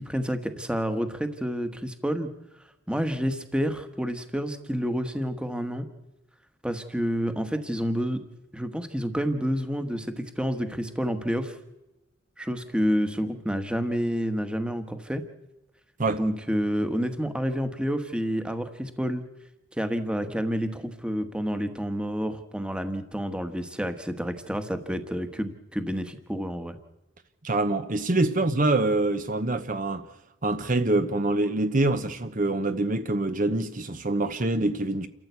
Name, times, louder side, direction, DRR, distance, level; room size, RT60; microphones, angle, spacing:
voice 1, 0.0-2.3 2.9-5.8 6.6-8.2 8.5-11.5 12.4-15.2 16.2-19.2 19.8-26.8, equal, 5° right, 1.4 m, -29 dB
voice 2, 27.4-30.1 30.4-35.1, right 2 dB, 40° right, 1.0 m, -25 dB
29.0 x 14.0 x 8.2 m
head